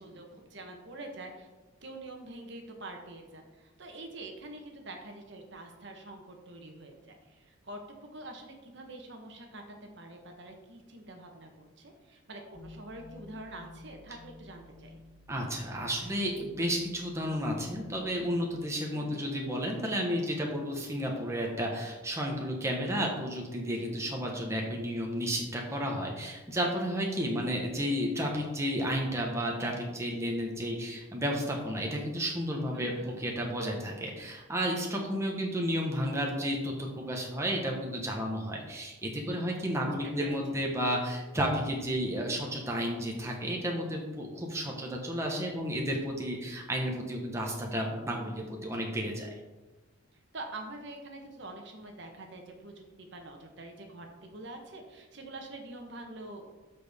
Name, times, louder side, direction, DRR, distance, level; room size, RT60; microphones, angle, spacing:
voice 1, 0.0-1.5 1.8-7.8 8.1-9.6 10.0-15.0 18.9-19.3 32.7-33.2 39.9-40.7 50.3-56.5, right 2 dB, 60° right, 3 dB, 1.1 m, -46 dB
sound 1, 12.5-18.3, left 2 dB, 15° left, 0.8 m, -53 dB
voice 2, 15.3-49.3, equal, 15° right, -1 dB, 1.2 m, -32 dB
13.0 x 4.4 x 3.6 m, 1.2 s
head